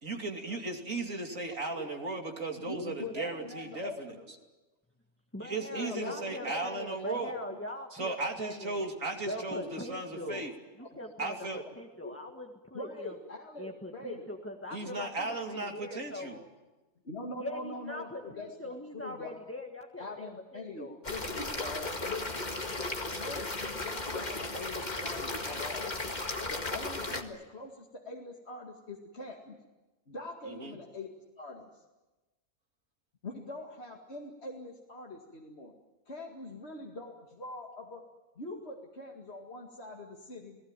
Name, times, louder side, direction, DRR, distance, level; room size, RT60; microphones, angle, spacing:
voice 1, 0.0-4.1 5.4-7.3 7.9-10.5 11.2-11.6 14.7-16.4 30.5-30.8, right 3 dB, 75° right, 2 dB, 3.3 m, -36 dB
voice 2, 1.6-1.9 2.3-4.3 5.6-7.6 10.8-10.9 12.7-14.3 17.0-19.5 20.0-22.5 23.1-26.0 26.5-29.6 30.1-31.1 31.4-31.8 33.2-35.7 36.1-38.1 38.4-40.6, left 2 dB, 50° left, 0 dB, 2.4 m, -43 dB
voice 3, 5.3-8.8 9.3-10.5 10.8-11.4 11.8-13.1 13.6-16.4 17.4-21.0, left 1 dB, 10° left, 2 dB, 1.6 m, -42 dB
sound 1, 21.0-27.2, left 2 dB, 35° left, 2.0 m, -35 dB
29.5 x 19.0 x 9.0 m, 1.1 s
omnidirectional pair, 1.4 m